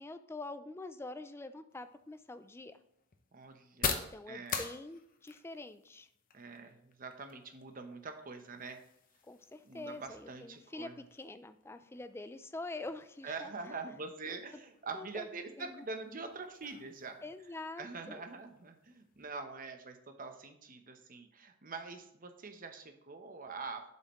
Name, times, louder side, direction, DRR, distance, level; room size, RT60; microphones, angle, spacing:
voice 1, 0.0-2.8 4.1-6.1 9.3-13.7 14.3-14.6 14.9-15.3 15.6-15.9 17.2-18.3, left 2 dB, 10° left, 11 dB, 0.4 m, -45 dB
sound 1, 1.7-19.3, left 6 dB, 45° left, 0.7 m, -46 dB
voice 2, 3.3-4.6 6.3-8.8 9.7-11.0 13.2-17.2 17.8-23.8, right 4 dB, 45° right, 6 dB, 0.9 m, -44 dB
7.8 x 5.6 x 3.0 m, 0.76 s
head